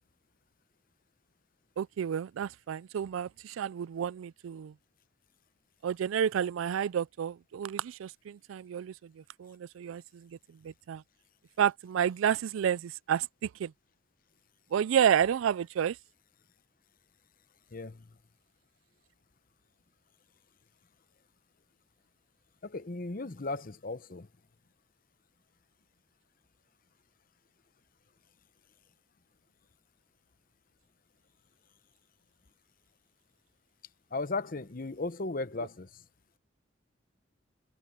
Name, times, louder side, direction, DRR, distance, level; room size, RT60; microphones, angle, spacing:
voice 1, 1.8-4.7 5.8-10.3 10.6-11.0 11.6-13.7 14.7-16.0, right 8 dB, 90° right, 0.3 m, -30 dB
voice 2, 17.7-18.2 22.6-24.3 34.1-36.0, left 3 dB, 45° left, 0.8 m, -36 dB
head